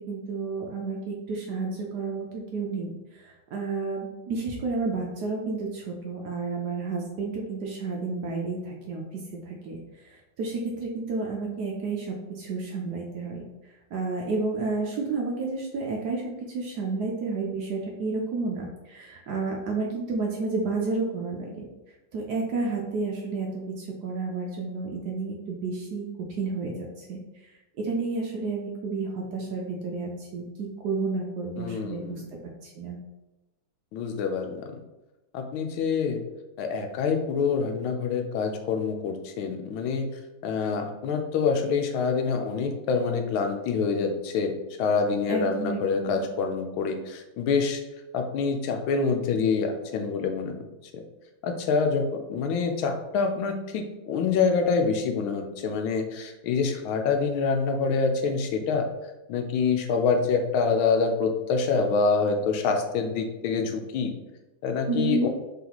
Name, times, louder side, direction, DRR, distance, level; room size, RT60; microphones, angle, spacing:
voice 1, 0.1-13.4 13.9-16.2 16.5-21.6 22.1-26.1 26.4-27.2 27.8-32.2 32.6-33.0 45.3-46.2 64.9-65.3, right 3 dB, 70° right, -1 dB, 1.0 m, -31 dB
voice 2, 31.6-32.2 33.9-34.7 35.3-36.2 36.6-40.1 40.4-44.5 44.8-47.8 48.1-50.6 51.4-58.9 59.3-64.1 64.6-65.3, left 5 dB, 80° left, 4 dB, 1.4 m, -26 dB
3.9 x 3.6 x 2.9 m, 1.0 s
omnidirectional pair, 2.2 m